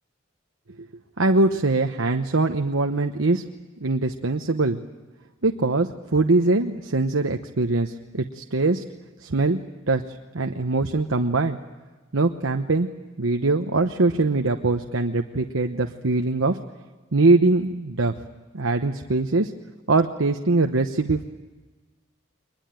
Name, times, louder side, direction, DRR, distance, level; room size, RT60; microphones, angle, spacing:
voice 1, 1.2-3.4 3.8-4.8 5.4-8.8 9.2-9.6 9.9-10.0 10.3-11.6 12.1-12.9 13.2-16.6 17.1-18.1 18.5-19.5 19.9-21.2, right 3 dB, 85° right, 5 dB, 1.0 m, -22 dB
23.0 x 21.0 x 9.1 m, 1.3 s
head